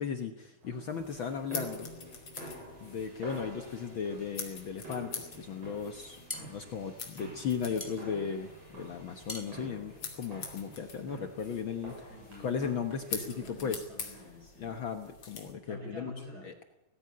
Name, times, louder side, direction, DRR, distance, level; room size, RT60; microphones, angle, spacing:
voice 1, 0.0-1.9 2.8-12.1 12.4-13.8 14.6-16.1 16.4-16.6, left 6 dB, 90° left, 6 dB, 1.1 m, -36 dB
sound 1, 0.6-14.5, right 1 dB, 45° right, 9.0 m, -48 dB
sound 2, 1.0-15.5, left 5 dB, 40° left, 3.1 m, -46 dB
sound 3, 6.3-10.9, left 2 dB, 5° left, 2.5 m, -46 dB
voice 2, 12.1-12.6 13.1-14.8 15.7-16.5, left 1 dB, 25° right, 1 dB, 7.1 m, -47 dB
18.0 x 15.5 x 9.7 m, 0.90 s
omnidirectional pair, 4.1 m